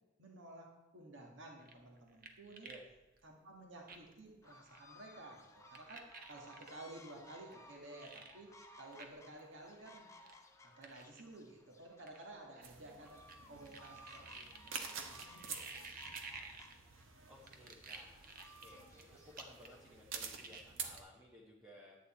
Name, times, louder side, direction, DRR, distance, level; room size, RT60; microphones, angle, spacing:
voice 1, 0.2-2.7 3.2-10.1 10.6-15.9, right 2 dB, 70° right, 0 dB, 1.9 m, -54 dB
sound 1, 1.6-2.9 3.2-3.3 3.9-4.2 4.7-4.8 5.7-6.7 7.5-7.6 8.0-8.3 8.9-9.1 9.4-9.5 10.2-10.3 10.8-11.2 12.1-13.4 13.7-17.0 17.5-19.0 19.4-19.9 20.1-20.6, right 4 dB, 45° right, 1.1 m, -51 dB
sound 2, 4.4-20.0, left 1 dB, 15° left, 0.8 m, -60 dB
sound 3, 12.6-21.0, right 6 dB, 85° right, 1.2 m, -49 dB
voice 2, 17.3-18.2 18.6-22.0, equal, 15° right, -3 dB, 1.3 m, -58 dB
11.0 x 8.4 x 4.4 m, 1.2 s
head